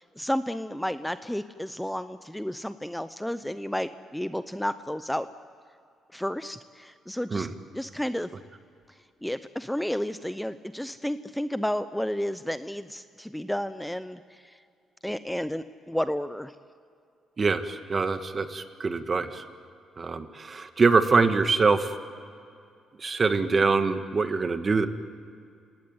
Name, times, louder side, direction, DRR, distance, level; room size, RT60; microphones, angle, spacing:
voice 1, 0.0-5.3 6.1-7.5 7.7-8.3 9.2-14.6 15.0-16.6 23.5-23.6, equal, 5° left, 12 dB, 0.7 m, -32 dB
voice 2, 17.4-19.5 20.0-22.0 23.0-24.9, right 4 dB, 35° right, 9 dB, 1.6 m, -24 dB
29.5 x 17.5 x 9.7 m, 2.4 s
cardioid pair, 90°, 0 cm